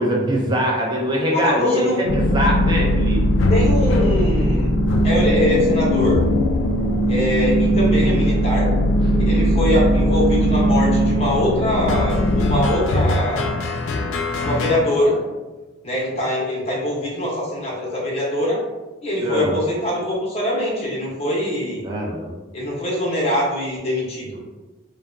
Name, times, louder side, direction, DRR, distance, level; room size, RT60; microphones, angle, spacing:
voice 1, 0.0-3.2 19.2-19.6 21.8-22.3, equal, 20° right, -3 dB, 0.5 m, -22 dB
voice 2, 1.3-2.0 3.5-4.7 5.0-6.2 7.1-8.7 9.3-13.6 14.4-15.2 15.8-18.6 19.0-21.9 22.5-24.4, left 1 dB, 30° left, -5 dB, 0.8 m, -22 dB
sound 1, 2.1-14.8, equal, 65° left, 0.3 m, -19 dB
2.8 x 2.2 x 2.5 m, 1.2 s
head